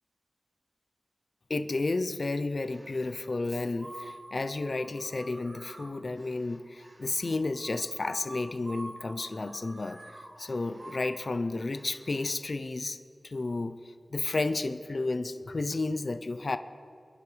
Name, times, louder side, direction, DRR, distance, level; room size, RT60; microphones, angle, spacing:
voice 1, 1.5-13.0 13.2-16.6, left 3 dB, 50° left, 10 dB, 0.7 m, -32 dB
sound 1, 2.6-3.2 3.7-12.3, right 1 dB, 40° right, 1.5 m, -49 dB
28.0 x 10.5 x 3.4 m, 2.3 s
wide cardioid pair, 80°, 0 cm